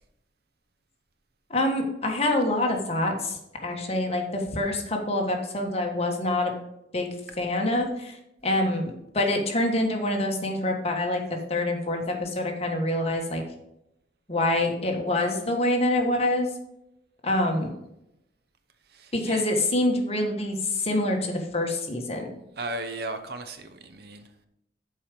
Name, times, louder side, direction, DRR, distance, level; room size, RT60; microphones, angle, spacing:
voice 1, 1.5-6.5 6.9-7.1 7.4-8.2 8.4-8.8 9.1-11.2 11.5-13.4 14.3-16.5 17.2-17.7 19.1-22.3, left 1 dB, 35° left, 2 dB, 1.4 m, -26 dB
voice 2, 18.9-19.5 22.6-24.2, right 2 dB, 60° right, 8 dB, 0.8 m, -36 dB
7.2 x 4.8 x 6.8 m, 0.84 s
head